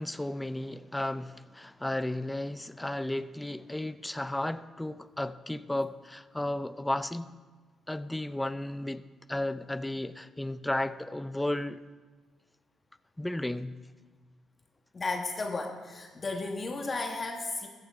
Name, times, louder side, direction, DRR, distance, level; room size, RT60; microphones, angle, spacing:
voice 1, 0.0-7.3 7.9-9.0 9.3-11.8 13.2-13.8, left 1 dB, 10° left, 14 dB, 0.5 m, -33 dB
voice 2, 14.9-17.7, left 3 dB, 35° left, 3 dB, 1.3 m, -34 dB
14.5 x 14.5 x 3.6 m, 1.4 s
cardioid pair, 80°, 0 cm